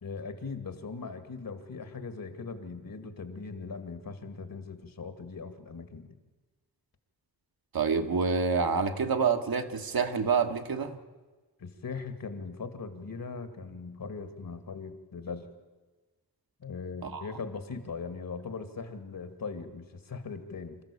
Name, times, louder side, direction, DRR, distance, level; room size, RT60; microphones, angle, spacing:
voice 1, 0.0-6.1 11.6-15.5 16.6-20.8, left 4 dB, 60° left, 10 dB, 2.2 m, -40 dB
voice 2, 7.7-11.0 17.0-17.2, right 5 dB, 65° right, 6 dB, 1.5 m, -27 dB
27.0 x 14.0 x 8.5 m, 1.3 s
wide cardioid pair, 145°, 39 cm